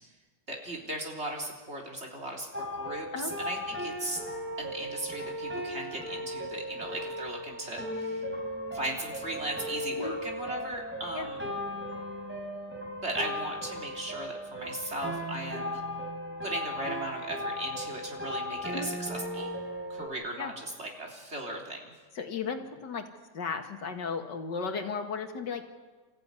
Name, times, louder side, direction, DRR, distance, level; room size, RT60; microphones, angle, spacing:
voice 1, 0.5-4.2 4.6-8.2 8.7-11.5 13.0-15.8 16.4-19.5 19.9-21.9, right 1 dB, 40° right, 0 dB, 3.8 m, -37 dB
sound 1, 2.5-20.1, equal, 5° right, 3.7 m, -37 dB
voice 2, 22.2-23.1 23.3-25.7, left 5 dB, 85° left, 5 dB, 2.4 m, -35 dB
28.5 x 14.5 x 9.7 m, 1.4 s
omnidirectional pair, 1.9 m